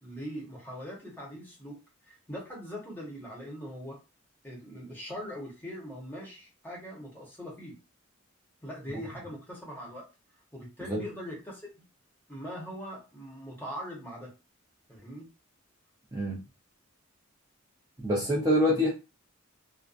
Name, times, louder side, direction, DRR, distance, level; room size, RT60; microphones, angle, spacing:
voice 1, 0.0-1.8 2.0-4.0 4.4-7.8 8.6-10.0 10.5-11.8 12.3-14.3 14.9-15.3, equal, 10° left, -3 dB, 0.9 m, -41 dB
voice 2, 18.0-18.9, equal, 15° right, -5 dB, 0.5 m, -25 dB
2.5 x 2.2 x 2.4 m, 0.28 s
head